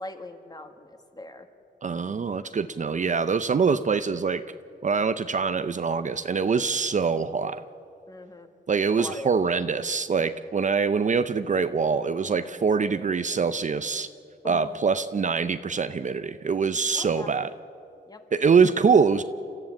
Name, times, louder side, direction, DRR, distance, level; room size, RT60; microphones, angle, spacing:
voice 1, 0.0-1.5 8.1-8.5 9.0-9.3 14.4-14.7 16.9-17.3 18.1-18.2, left 2 dB, 20° left, 6 dB, 1.8 m, -40 dB
voice 2, 1.8-4.4 4.8-7.6 8.7-14.1 14.4-17.5 18.3-19.2, right 5 dB, 40° right, 11 dB, 0.6 m, -24 dB
30.0 x 14.0 x 8.8 m, 2.6 s
wide cardioid pair, 145°, 19 cm